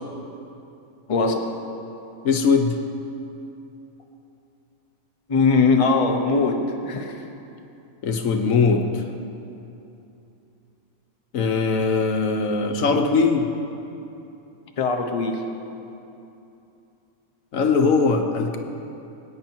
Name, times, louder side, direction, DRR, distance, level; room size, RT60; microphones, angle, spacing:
voice 1, 1.1-1.4 5.3-6.6 6.8-7.1 14.8-15.4, left 4 dB, 30° left, 3 dB, 0.9 m, -20 dB
voice 2, 2.2-2.7 8.0-9.0 11.3-13.5 17.5-18.6, left 4 dB, 70° left, 5 dB, 1.3 m, -20 dB
20.0 x 9.3 x 4.5 m, 2.8 s
omnidirectional pair, 1.5 m